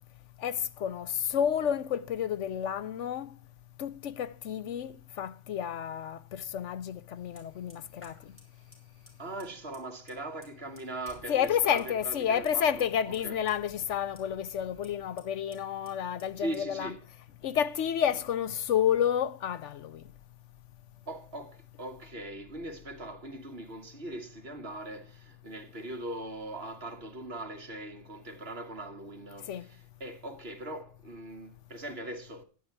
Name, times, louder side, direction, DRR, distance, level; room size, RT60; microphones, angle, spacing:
voice 1, 0.4-3.3 3.8-8.1 11.3-16.9 17.4-20.0 29.5-29.7, left 9 dB, 75° left, 1.0 m, -30 dB
Fire, 7.2-19.0, equal, 10° left, 5.1 m, -59 dB
voice 2, 9.2-13.4 16.4-17.0 21.1-32.4, right 1 dB, 55° right, 1.9 m, -40 dB
11.0 x 10.5 x 4.6 m
omnidirectional pair, 1.3 m